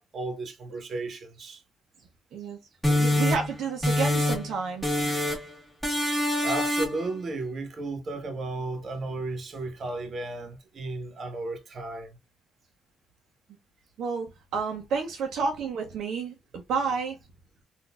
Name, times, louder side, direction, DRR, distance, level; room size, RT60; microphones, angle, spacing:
voice 1, 0.0-1.6 6.0-12.2, right 2 dB, 50° right, 1.1 m, -34 dB
sound 1, 2.8-4.6 4.8-5.5 5.8-7.1, left 1 dB, 5° right, 1.7 m, -25 dB
voice 2, 2.9-4.9 14.0-17.2, right 5 dB, 75° right, 0.7 m, -30 dB
3.9 x 2.6 x 2.3 m
cardioid pair, 90°, 0 cm